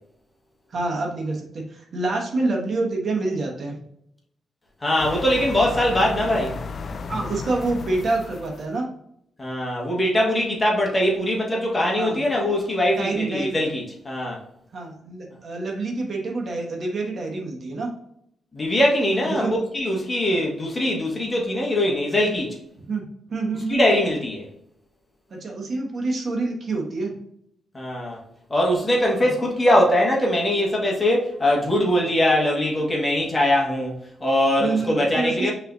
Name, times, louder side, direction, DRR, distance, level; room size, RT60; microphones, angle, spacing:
voice 1, 0.7-3.8 7.1-8.9 12.0-12.2 13.0-13.6 14.7-17.9 19.3-19.5 22.8-23.8 25.3-27.2 29.2-29.3 34.6-35.5, right 3 dB, 50° right, 1.2 m, -27 dB
voice 2, 4.8-6.6 9.4-14.4 18.5-22.6 23.7-24.5 27.7-28.2 28.5-35.5, left 1 dB, 25° left, 1.4 m, -22 dB
sound 1, 5.0-8.8, left 4 dB, 50° left, 0.4 m, -34 dB
5.6 x 3.3 x 2.6 m
cardioid pair, 95°, 0 cm